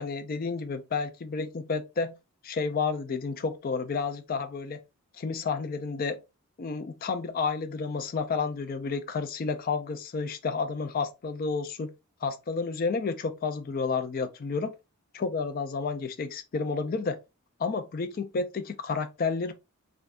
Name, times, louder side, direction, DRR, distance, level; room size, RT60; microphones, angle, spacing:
voice 1, 0.0-2.1 2.4-4.8 5.2-6.2 6.6-11.9 12.2-14.7 15.1-17.2 17.6-19.5, left 4 dB, 40° left, 0.4 m, -31 dB
3.3 x 2.6 x 2.4 m
head